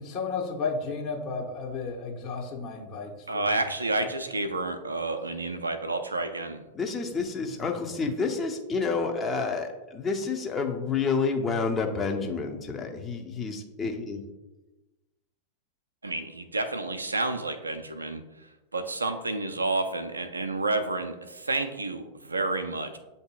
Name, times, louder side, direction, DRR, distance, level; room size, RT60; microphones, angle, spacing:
voice 1, 0.0-3.6 7.6-7.7, left 4 dB, 40° left, -2 dB, 1.0 m, -33 dB
voice 2, 3.3-6.6 16.0-18.2 18.7-23.0, right 2 dB, 80° right, 8 dB, 0.3 m, -30 dB
voice 3, 6.7-14.2, left 4 dB, 20° left, 3 dB, 0.6 m, -29 dB
7.8 x 2.7 x 2.2 m, 1.1 s
figure-of-eight pair, 90°, 0 cm